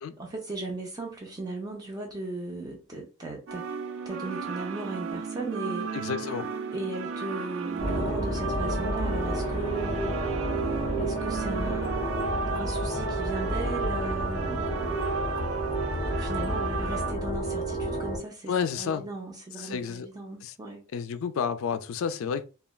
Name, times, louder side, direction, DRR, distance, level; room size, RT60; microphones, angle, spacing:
voice 1, 0.2-3.6 4.1-5.9 6.7-10.2 11.0-15.1 16.0-20.8, right 2 dB, 20° right, 0.6 m, -37 dB
sound 1, 3.5-17.1, right 5 dB, 65° right, 0.4 m, -34 dB
voice 2, 5.9-6.5 18.5-19.0 19.6-20.1 20.4-20.5 20.9-22.4, left 7 dB, 75° left, 0.3 m, -30 dB
sound 2, 7.8-18.2, right 1 dB, 35° right, 1.1 m, -30 dB
3.2 x 2.2 x 2.3 m
head